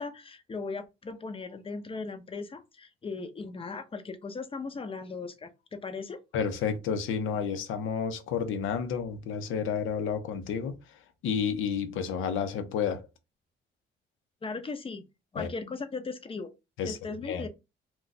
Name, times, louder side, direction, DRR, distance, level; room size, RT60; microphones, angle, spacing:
voice 1, 0.0-6.2 14.4-15.1 15.3-16.5 16.8-17.5, left 4 dB, 25° left, 0.6 m, -38 dB
voice 2, 6.3-11.0 11.2-13.1 15.4-15.5 16.8-17.4, left 6 dB, 85° left, 0.7 m, -31 dB
2.4 x 2.3 x 4.0 m
cardioid pair, 90°, 20 cm